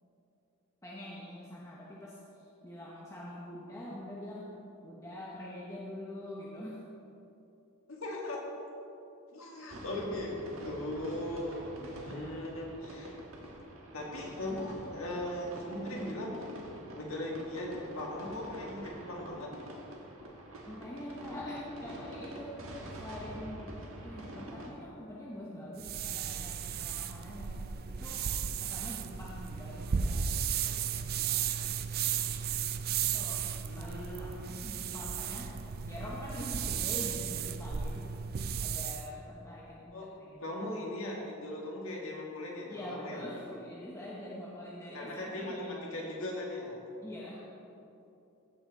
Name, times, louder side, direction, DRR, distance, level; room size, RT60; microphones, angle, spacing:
voice 1, 0.8-2.2 2.6-4.5 4.8-6.8 12.1-12.2 20.7-27.6 27.9-28.2 28.6-31.6 33.1-33.4 33.8-35.5 35.8-38.0 38.6-40.5 42.7-46.1 47.0-47.4, left 1 dB, 15° left, -6 dB, 0.9 m, -45 dB
voice 2, 7.9-8.4 9.3-13.2 13.9-16.5 16.9-19.5 33.6-34.6 39.9-40.1 40.4-43.2 44.9-46.8, left 1 dB, 70° left, -2 dB, 1.9 m, -39 dB
sound 1, 9.7-24.7, right 1 dB, 70° right, 1.5 m, -46 dB
sound 2, 25.8-39.1, right 7 dB, 45° right, 0.4 m, -35 dB
15.5 x 5.9 x 4.0 m, 2.9 s
head